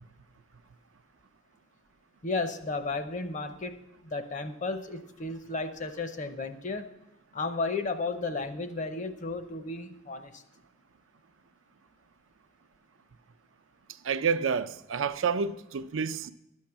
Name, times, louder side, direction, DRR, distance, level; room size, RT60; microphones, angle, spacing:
voice 1, 2.2-6.9 7.3-10.4, left 3 dB, 40° left, 0.8 m, -33 dB
voice 2, 14.0-16.3, right 6 dB, 75° right, 0.5 m, -29 dB
12.0 x 6.5 x 5.8 m
head